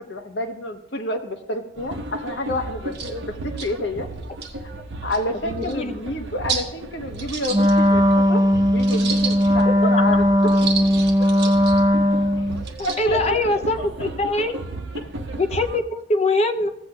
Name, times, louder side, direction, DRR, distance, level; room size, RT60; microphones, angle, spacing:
voice 1, 0.1-2.9 3.3-4.1 4.6-4.7 5.0-8.4 8.7-10.3 12.8-14.1, left 1 dB, 80° left, 4 dB, 1.1 m, -29 dB
sound 1, 1.8-15.8, right 2 dB, 80° right, 0.9 m, -35 dB
sound 2, 2.5-2.6 2.9-3.1 3.6-3.7 4.2-4.5 5.1-5.2 5.6-5.7 6.5-6.7 7.1-8.1 8.8-9.6 10.4-11.8 12.6-13.0, right 6 dB, 55° right, 1.3 m, -31 dB
voice 2, 5.5-5.9 13.0-14.6 15.4-16.7, left 2 dB, 35° left, 7 dB, 0.6 m, -23 dB
Wind instrument woodwind instrument, 7.5-12.6, equal, 20° right, 0.3 m, -18 dB
16.0 x 8.2 x 2.3 m, 0.82 s
head